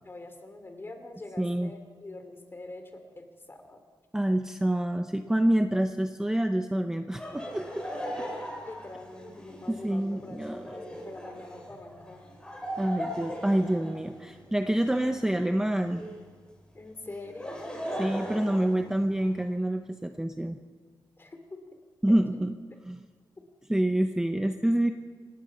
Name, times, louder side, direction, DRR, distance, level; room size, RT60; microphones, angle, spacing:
voice 1, 0.0-3.8 8.6-12.3 16.7-17.8 21.2-21.6 22.1-22.4, left 2 dB, 25° left, 6 dB, 2.7 m, -44 dB
voice 2, 1.4-1.7 4.1-7.9 8.2-8.3 9.7-10.8 12.8-16.0 18.0-20.6 22.0-22.5 22.9-23.0 23.7-24.9, right 1 dB, 5° right, 6 dB, 0.7 m, -27 dB
Laughter, 7.2-16.2 17.1-19.5, equal, 10° left, 5.7 m, -39 dB
26.5 x 19.0 x 5.7 m, 1.5 s
wide cardioid pair, 170°, 9 cm